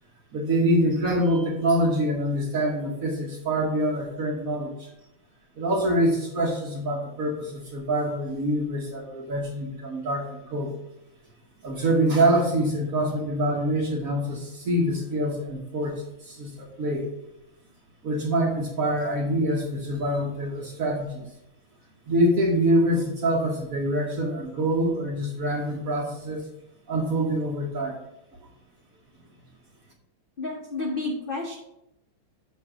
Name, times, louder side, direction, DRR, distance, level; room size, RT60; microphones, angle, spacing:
voice 1, 0.3-4.9 5.6-10.7 11.6-17.1 18.0-21.3 22.1-26.4 26.9-28.0, right 1 dB, 50° right, 0 dB, 1.1 m, -25 dB
voice 2, 30.4-31.6, left 2 dB, 50° left, -1 dB, 0.6 m, -30 dB
7.3 x 3.3 x 6.0 m, 0.85 s
omnidirectional pair, 2.3 m